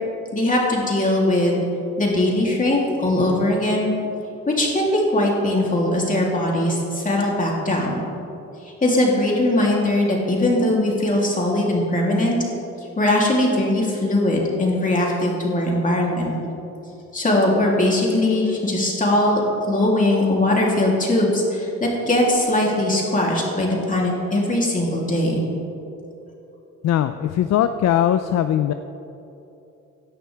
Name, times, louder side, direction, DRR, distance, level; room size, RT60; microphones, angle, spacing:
voice 1, 0.3-1.6 2.0-3.9 4.5-8.0 8.8-12.4 13.0-16.3 17.1-25.4, left 1 dB, 25° left, -3 dB, 3.1 m, -20 dB
voice 2, 26.8-28.7, left 10 dB, 60° left, 10 dB, 0.5 m, -20 dB
16.5 x 11.5 x 3.4 m, 2.9 s
cardioid pair, 90°, 30 cm